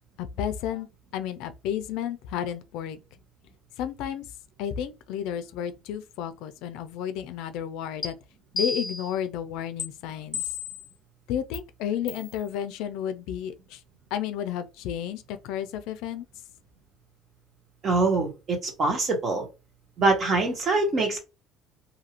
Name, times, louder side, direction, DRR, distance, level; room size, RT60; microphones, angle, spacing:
voice 1, 0.2-0.9 1.1-3.0 3.8-4.3 4.6-8.1 8.5-10.4 11.3-13.8 14.1-16.2, left 9 dB, 75° left, 0.4 m, -32 dB
sound 1, 8.0-8.1 8.6-9.2 9.8-9.9 10.3-10.9 11.5-11.6 12.1-12.3, left 4 dB, 15° left, 1.0 m, -32 dB
voice 2, 17.8-19.5 20.0-21.2, right 3 dB, 40° right, 1.3 m, -24 dB
2.7 x 2.5 x 2.9 m
cardioid pair, 120°, 0 cm